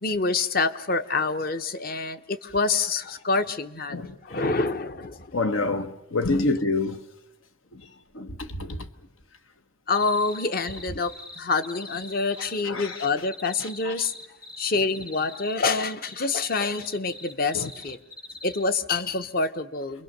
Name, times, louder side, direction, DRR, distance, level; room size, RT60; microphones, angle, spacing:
voice 1, 0.0-4.0 4.2-5.3 6.2-6.5 9.9-14.1 14.6-18.0 18.4-20.0, left 4 dB, 45° left, 0.9 m, -26 dB
voice 2, 3.9-4.4 5.3-7.0 7.7-7.9 8.1-8.9 12.6-13.2 13.6-13.9 17.5-17.7, left 3 dB, 80° left, 1.3 m, -28 dB
sound 1, 9.9-18.6, left 2 dB, 20° left, 0.9 m, -42 dB
28.0 x 22.5 x 6.7 m
head